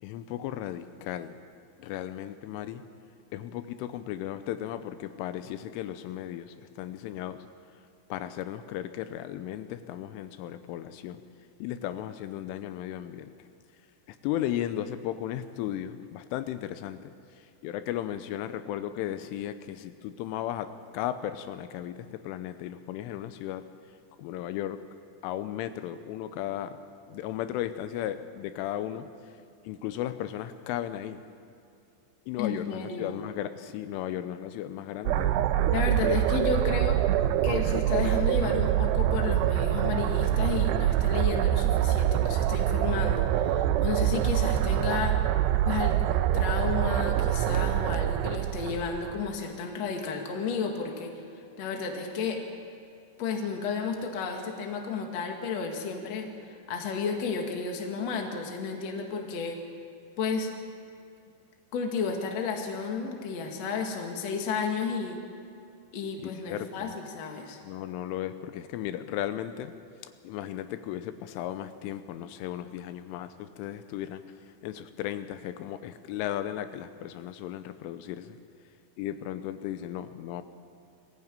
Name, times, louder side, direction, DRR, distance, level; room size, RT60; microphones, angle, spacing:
voice 1, 0.0-1.4 1.8-2.8 3.3-7.4 8.1-11.2 11.6-13.3 14.1-23.7 24.2-24.8 25.2-26.8 27.1-29.1 29.7-31.2 32.3-35.7 36.0-36.2 66.2-67.0 67.6-69.7 70.2-78.4 79.0-80.4, left 11 dB, 85° left, 10 dB, 3.3 m, -35 dB
voice 2, 32.4-33.2 35.7-37.0 37.4-45.2 45.7-51.1 51.6-52.4 53.2-59.6 60.2-60.5 61.7-65.2 65.9-67.6, left 5 dB, 50° left, 2 dB, 2.3 m, -32 dB
sound 1, 35.1-49.3, right 12 dB, 90° right, 2.4 m, -25 dB
22.0 x 15.0 x 8.9 m, 2.5 s
omnidirectional pair, 5.6 m